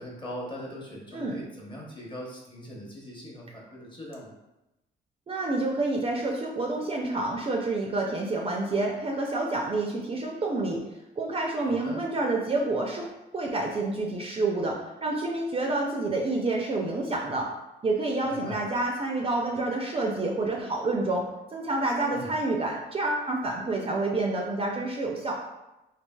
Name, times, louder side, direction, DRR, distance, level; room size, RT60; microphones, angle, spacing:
voice 1, 0.0-4.3 11.6-12.0 18.2-18.6 22.1-22.3, equal, 25° left, -3 dB, 0.8 m, -40 dB
voice 2, 1.1-1.4 5.3-10.8 11.2-13.1 13.3-17.5 17.8-21.2 21.5-25.4, right 2 dB, 30° right, -1 dB, 0.4 m, -28 dB
3.1 x 2.3 x 2.2 m, 0.95 s
cardioid pair, 90°, 20 cm